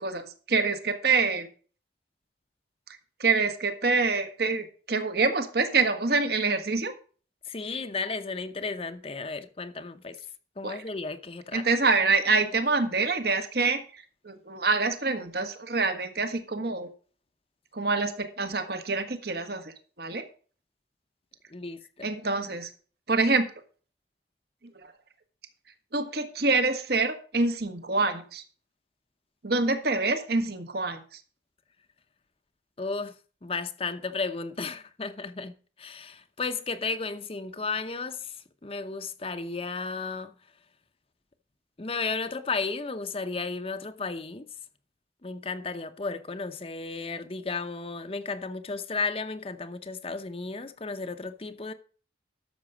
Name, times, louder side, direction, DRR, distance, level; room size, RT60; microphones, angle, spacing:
voice 1, 0.0-1.5 2.9-6.9 10.6-10.8 11.5-16.9 17.7-20.3 22.0-22.7 23.1-23.5 24.8-24.9 25.9-28.4 29.4-31.2, right 3 dB, 60° right, 1.4 m, -26 dB
voice 2, 7.4-10.2 10.6-11.7 21.5-22.1 32.8-40.4 41.8-44.5 45.2-51.7, left 4 dB, 30° left, 0.7 m, -34 dB
12.5 x 6.8 x 5.0 m
head